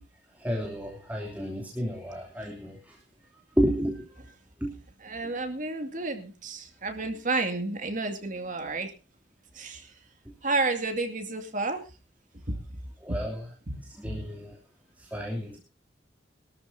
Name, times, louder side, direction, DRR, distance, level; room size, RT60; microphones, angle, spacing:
voice 1, 0.3-3.0 3.6-4.1 4.6-4.8 13.0-13.5 13.8-14.6 15.0-15.6, equal, 10° right, -1 dB, 3.0 m, -31 dB
voice 2, 5.0-8.9 9.5-9.9 10.4-11.8 12.5-12.6 13.1-13.2 13.7-14.2, right 3 dB, 45° right, 6 dB, 2.3 m, -31 dB
23.0 x 13.0 x 2.8 m, 0.32 s
head